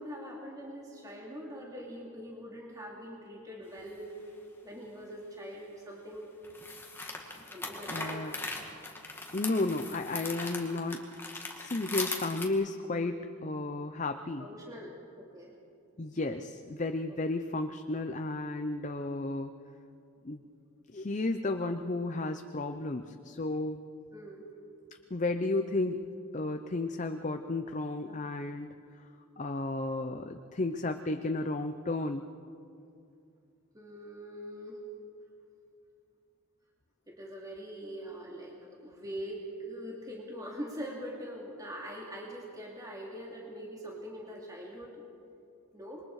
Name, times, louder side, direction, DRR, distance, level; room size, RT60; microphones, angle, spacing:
voice 1, 0.0-4.2 4.6-6.4 6.9-7.1 7.5-8.4 14.4-15.5 24.1-24.4 33.7-34.8 37.1-45.0 45.7-46.0, equal, 15° right, -3 dB, 2.7 m, -43 dB
sound 1, 3.8-3.9 6.4-12.5, left 3 dB, 10° left, 2.0 m, -39 dB
voice 2, 7.9-8.3 9.3-11.0 11.6-14.5 16.0-19.5 20.2-20.4 20.9-23.8 25.1-26.0 26.3-28.7 29.4-32.3, left 2 dB, 35° left, 7 dB, 0.7 m, -33 dB
27.0 x 22.5 x 4.8 m, 2.6 s
head